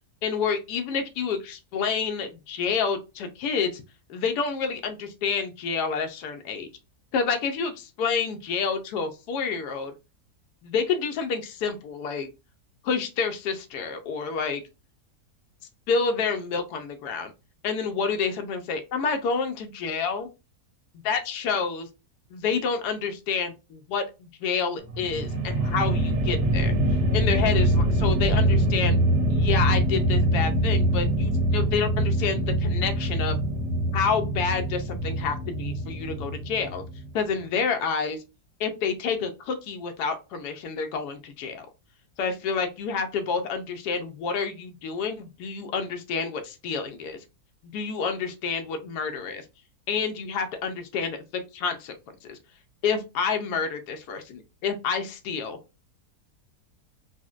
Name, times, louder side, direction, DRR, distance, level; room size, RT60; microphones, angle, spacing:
voice 1, 0.2-3.8 4.1-6.7 7.1-9.9 10.6-12.3 12.8-14.6 15.9-17.3 17.6-20.3 21.0-21.9 22.3-26.7 27.1-29.0 29.3-33.4 33.9-36.8 37.1-38.2 38.6-41.7 42.2-47.2 47.7-49.4 49.9-51.2 51.5-51.9 52.2-52.4 52.8-55.6, left 5 dB, 75° left, 6 dB, 1.1 m, -28 dB
sound 1, 24.8-37.2, right 1 dB, 75° right, 1.2 m, -24 dB
4.0 x 2.1 x 2.4 m, 0.27 s
omnidirectional pair, 1.7 m